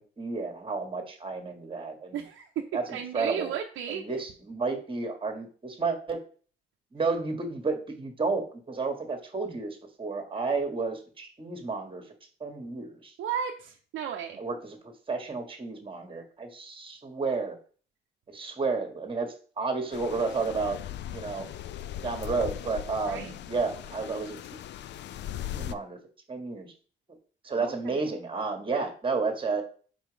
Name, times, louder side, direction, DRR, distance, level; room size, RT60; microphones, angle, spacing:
voice 1, 0.0-2.2 2.7-3.5 3.9-6.2 6.9-12.0 12.4-13.1 14.4-17.6 18.3-20.8 21.1-21.5 22.0-24.4 25.5-26.0 26.3-26.7 27.4-29.6, right 4 dB, 25° right, 5 dB, 1.5 m, -31 dB
voice 2, 2.1-2.6 2.9-4.2 13.2-14.4 23.0-23.3 27.6-28.1, right 8 dB, 80° right, 1 dB, 0.7 m, -35 dB
sound 1, 19.9-25.7, left 11 dB, 65° left, 0.4 m, -39 dB
4.8 x 4.4 x 5.0 m, 0.42 s
cardioid pair, 90°, 20 cm